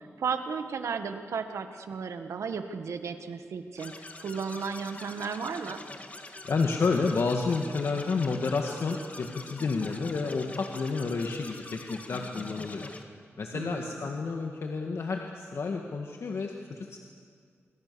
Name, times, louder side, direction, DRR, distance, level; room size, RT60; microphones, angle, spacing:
voice 1, 0.2-3.9 4.2-5.8 13.5-13.9, right 6 dB, 85° right, 7 dB, 1.6 m, -34 dB
sound 1, 3.8-13.0, left 2 dB, 30° left, 2.0 m, -44 dB
voice 2, 6.4-12.9 13.4-17.0, left 4 dB, 65° left, 2 dB, 1.8 m, -30 dB
27.0 x 22.0 x 7.0 m, 2.1 s
cardioid pair, 85°, 5 cm